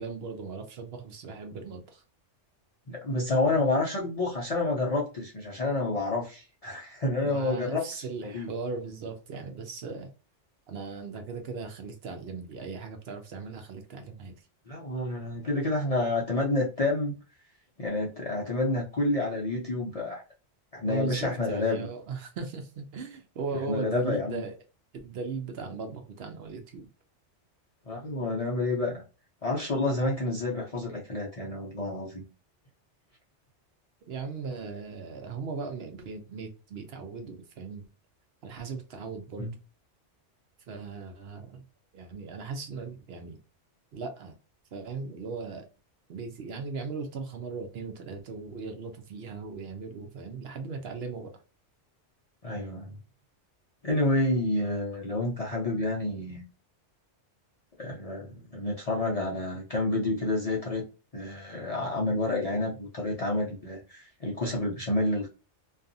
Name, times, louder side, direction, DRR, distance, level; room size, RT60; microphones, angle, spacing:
voice 1, 0.0-2.0 7.2-10.1 10.7-14.3 20.8-24.5 25.0-26.9 34.1-37.8 38.4-39.5 40.7-41.6 41.9-43.4 43.9-44.4 44.7-45.7 46.1-51.3, right 4 dB, 65° right, 0.8 m, -38 dB
voice 2, 2.9-8.5 14.7-17.2 17.8-20.2 20.7-21.9 23.7-24.4 27.9-29.0 29.4-32.2 39.4-39.5 52.4-53.0 53.8-56.4 57.8-60.8 61.1-65.3, left 2 dB, 45° left, 0.5 m, -29 dB
2.5 x 2.3 x 2.5 m
omnidirectional pair, 1.2 m